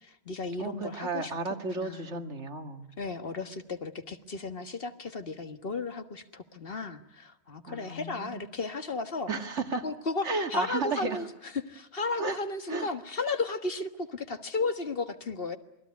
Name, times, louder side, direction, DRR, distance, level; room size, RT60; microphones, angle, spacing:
voice 1, 0.0-1.3 1.8-2.1 3.0-9.3 9.8-15.6, left 3 dB, 55° left, 9 dB, 1.7 m, -34 dB
voice 2, 0.6-2.9 7.7-8.5 9.3-9.8 10.2-11.2 12.2-12.4 12.7-12.9, right 3 dB, 85° right, 6 dB, 2.3 m, -33 dB
27.5 x 20.5 x 9.5 m, 0.83 s
omnidirectional pair, 1.2 m